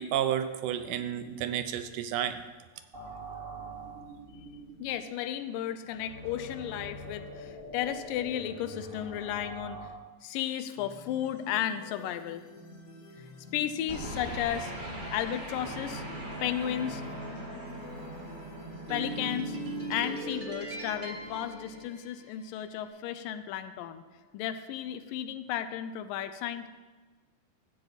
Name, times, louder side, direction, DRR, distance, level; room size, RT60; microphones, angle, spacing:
voice 1, 0.0-2.4, right 10 dB, 80° right, 9 dB, 2.1 m, -31 dB
sound 1, 2.9-9.9, right 1 dB, 65° right, 0.5 m, -44 dB
voice 2, 4.8-9.9 10.2-12.5 13.2-13.3 13.5-14.7 15.1-16.0 16.4-17.0 18.9-19.6 19.9-24.0 24.3-26.7, left 10 dB, 85° left, 11 dB, 2.3 m, -34 dB
sound 2, 10.8-20.4, left 1 dB, 60° left, 1.9 m, -49 dB
sound 3, 13.9-22.4, right 1 dB, 35° right, 0.8 m, -39 dB
13.5 x 8.2 x 4.0 m, 1.3 s
omnidirectional pair, 3.9 m